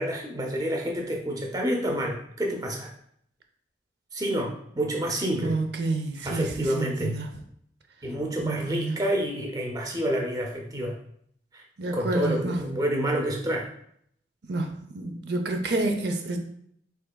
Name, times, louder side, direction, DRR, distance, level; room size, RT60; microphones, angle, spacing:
voice 1, 0.0-2.9 4.1-5.6 6.2-7.2 8.0-11.0 11.5-11.6 11.9-13.7, equal, 20° right, 1 dB, 0.5 m, -28 dB
voice 2, 5.4-7.3 8.4-9.0 11.8-12.6 14.5-16.4, right 2 dB, 75° right, 5 dB, 0.6 m, -29 dB
5.3 x 3.7 x 2.2 m, 0.69 s
head